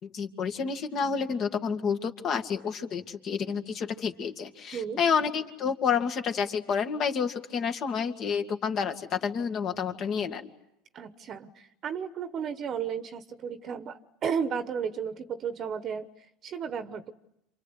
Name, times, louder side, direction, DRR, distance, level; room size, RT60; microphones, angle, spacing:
voice 1, 0.0-10.5, left 6 dB, 45° left, 6 dB, 2.2 m, -29 dB
voice 2, 10.9-16.1 16.4-17.1, right 7 dB, 40° right, 11 dB, 1.1 m, -33 dB
28.0 x 26.0 x 8.1 m, 0.84 s
supercardioid pair, 110°, 0 cm